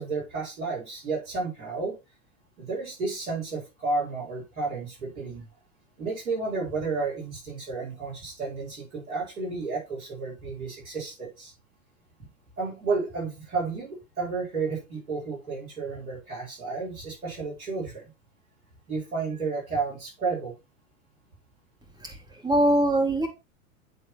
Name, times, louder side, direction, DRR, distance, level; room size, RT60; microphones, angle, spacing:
voice 1, 0.0-1.9 2.6-5.4 6.0-11.5 12.6-18.1 18.9-20.5, right 4 dB, 85° right, -3 dB, 4.9 m, -32 dB
voice 2, 22.0-23.3, right 1 dB, 10° right, 3 dB, 2.4 m, -23 dB
9.2 x 3.8 x 4.2 m, 0.26 s
hypercardioid pair, 100°, 41 cm